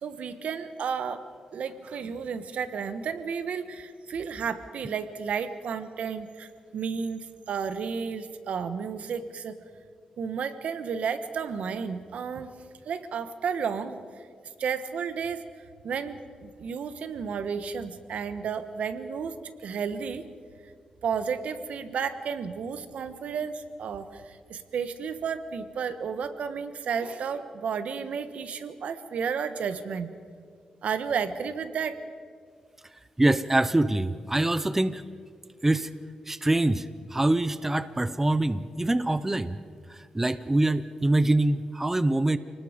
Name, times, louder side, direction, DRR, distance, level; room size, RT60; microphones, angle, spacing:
voice 1, 0.0-1.2 1.5-9.6 10.2-12.5 12.8-14.0 14.6-15.4 15.8-20.2 21.0-30.1 30.8-32.0, right 6 dB, 75° right, 11 dB, 1.3 m, -32 dB
voice 2, 33.2-35.0 35.6-35.9 36.3-39.6 39.9-42.4, right 2 dB, 15° right, 14 dB, 0.7 m, -24 dB
29.0 x 19.5 x 5.1 m, 2.1 s
cardioid pair, 100°, 2 cm